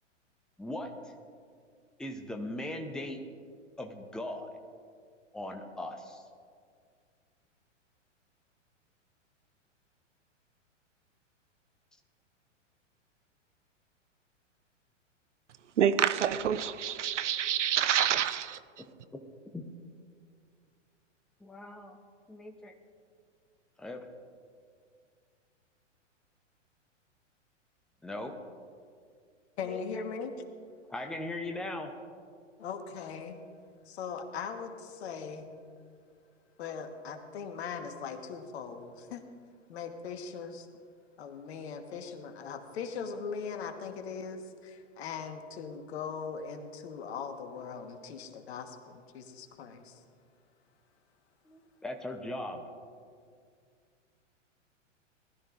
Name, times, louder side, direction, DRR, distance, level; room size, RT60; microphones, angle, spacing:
voice 1, 0.6-1.1 2.0-3.2 3.8-4.5 5.3-6.2 18.8-19.6 21.4-22.0 22.3-22.7 23.8-24.1 28.0-28.4 29.7-30.0 30.9-31.9 51.5-52.6, left 1 dB, ahead, 0.7 m, -39 dB
voice 2, 15.8-18.6, right 9 dB, 70° right, 0.7 m, -27 dB
voice 3, 29.6-30.3 32.6-33.4 33.8-35.5 36.6-39.2 39.7-40.7 41.2-50.0, left 6 dB, 55° left, 1.4 m, -40 dB
19.5 x 12.5 x 2.5 m
figure-of-eight pair, 110°, 37 cm